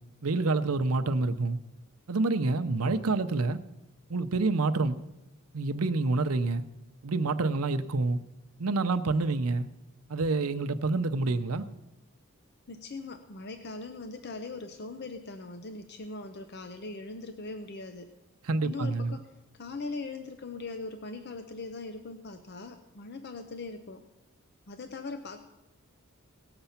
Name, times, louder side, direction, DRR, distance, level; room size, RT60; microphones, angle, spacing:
voice 1, 0.2-1.6 2.1-3.6 4.1-5.0 5.5-6.6 7.0-8.2 8.6-9.7 10.1-11.6 18.4-19.1, right 3 dB, 80° right, 0.7 m, -27 dB
voice 2, 12.7-18.1 18.6-19.3 19.6-24.0 24.7-25.4, left 3 dB, 50° left, 0.7 m, -40 dB
17.5 x 6.8 x 5.8 m
head